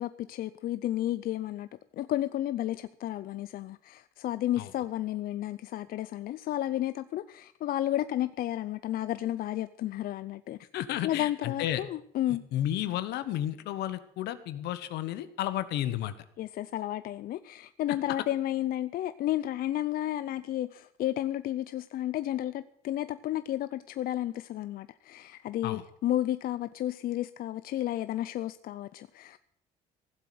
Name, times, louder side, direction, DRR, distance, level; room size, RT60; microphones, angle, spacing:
voice 1, 0.0-1.7 1.9-10.6 11.0-12.4 16.4-29.4, left 13 dB, 60° left, 0.5 m, -32 dB
voice 2, 10.7-11.8 12.5-16.1 25.6-25.8, left 12 dB, 80° left, 1.2 m, -32 dB
16.0 x 7.7 x 7.7 m
cardioid pair, 110°, 17 cm